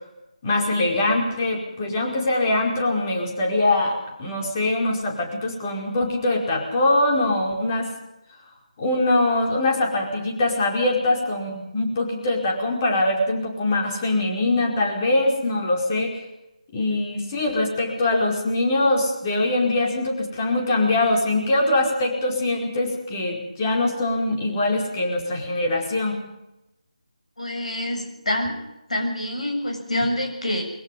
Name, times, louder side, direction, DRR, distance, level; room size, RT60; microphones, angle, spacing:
voice 1, 0.4-7.9 8.8-16.2 16.7-26.2, left 2 dB, 25° left, 1 dB, 4.8 m, -23 dB
voice 2, 27.4-28.6 28.9-30.6, left 1 dB, 65° left, 3 dB, 7.2 m, -26 dB
22.0 x 22.0 x 5.5 m, 0.90 s
figure-of-eight pair, 155°, 4 cm